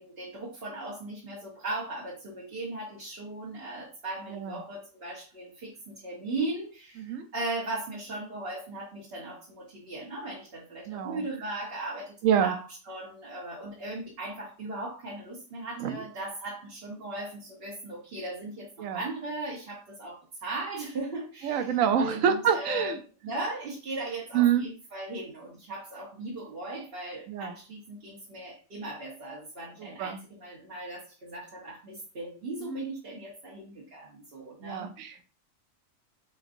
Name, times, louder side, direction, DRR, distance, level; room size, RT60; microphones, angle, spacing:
voice 1, 0.0-22.9 23.2-34.9, right 2 dB, 50° right, -4 dB, 1.2 m, -38 dB
voice 2, 10.9-11.2 12.2-12.5 15.8-16.0 18.8-19.0 21.4-23.0 24.3-24.7 27.3-27.5 29.8-30.2 32.6-32.8 34.6-35.2, right 8 dB, 85° right, 8 dB, 1.0 m, -27 dB
4.5 x 4.0 x 2.6 m, 0.38 s
omnidirectional pair, 1.4 m